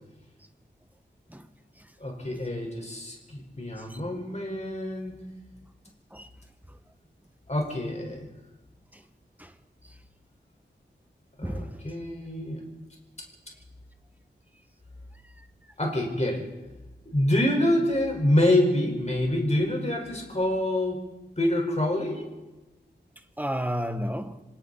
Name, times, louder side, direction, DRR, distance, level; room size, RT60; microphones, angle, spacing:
voice 1, 2.0-5.3 7.5-8.3 11.4-12.7 15.8-16.4 17.0-21.0 21.4-22.3, left 1 dB, 35° left, 4.7 m, -26 dB
voice 2, 11.4-11.8 23.4-24.4, equal, 10° right, 1.5 m, -32 dB
27.0 x 25.5 x 4.1 m
wide cardioid pair, 70°, 19 cm